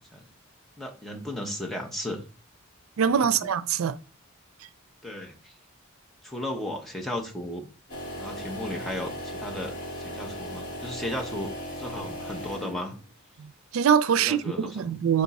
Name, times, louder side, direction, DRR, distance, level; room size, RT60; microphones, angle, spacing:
voice 1, 0.8-2.2 3.2-3.3 5.0-5.5 6.2-7.7 8.2-13.0 14.2-14.9, left 1 dB, ahead, 0.9 m, -35 dB
voice 2, 3.0-4.0 13.4-15.2, right 7 dB, 80° right, 0.4 m, -24 dB
sound 1, 7.9-13.1, equal, 40° left, 2.4 m, -37 dB
6.5 x 3.6 x 4.1 m
head